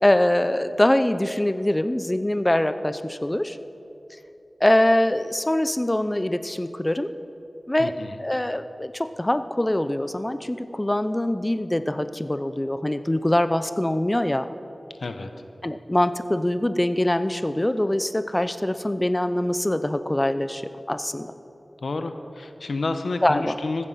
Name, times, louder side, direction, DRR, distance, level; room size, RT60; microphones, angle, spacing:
voice 1, 0.0-3.6 4.6-7.1 7.7-14.5 15.6-20.6 20.9-21.3 23.2-23.6, left 1 dB, 20° left, 11 dB, 0.7 m, -23 dB
voice 2, 7.8-8.1 15.0-15.3 21.8-23.9, left 3 dB, 85° left, 8 dB, 1.0 m, -29 dB
15.0 x 14.5 x 5.8 m, 2.9 s
wide cardioid pair, 75°, 0 cm